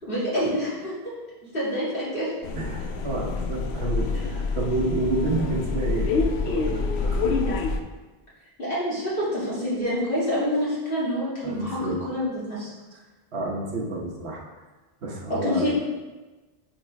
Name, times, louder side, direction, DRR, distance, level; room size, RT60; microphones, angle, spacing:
voice 1, 0.0-1.1 1.5-2.3 5.2-5.6 8.6-11.8 12.0-12.7 15.3-15.7, equal, 60° left, -9 dB, 2.6 m, -27 dB
sound 1, 2.4-7.8, left 4 dB, 90° left, 0.9 m, -27 dB
voice 2, 2.6-7.8 11.4-12.0 12.9-13.0 13.3-14.4 15.0-15.7, right 2 dB, 90° right, -1 dB, 1.3 m, -30 dB
9.2 x 3.9 x 3.4 m, 1.2 s
omnidirectional pair, 1.0 m